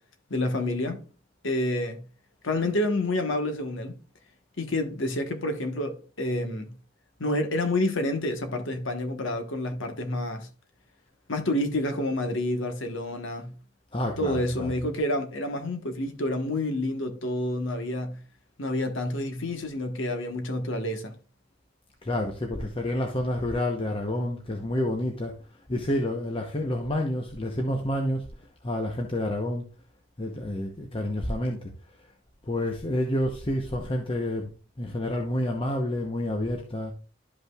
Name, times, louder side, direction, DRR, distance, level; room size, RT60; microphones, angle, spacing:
voice 1, 0.3-1.0 1.4-2.0 2.4-4.0 4.6-6.7 7.2-10.5 11.3-13.5 14.2-18.2 18.6-21.1, left 1 dB, 70° left, 1.3 m, -28 dB
voice 2, 13.9-14.7 22.0-25.4 25.7-28.2 28.6-29.7 30.2-31.7 32.5-34.5 34.8-36.9, left 1 dB, 25° left, 0.9 m, -29 dB
12.0 x 5.4 x 2.4 m
head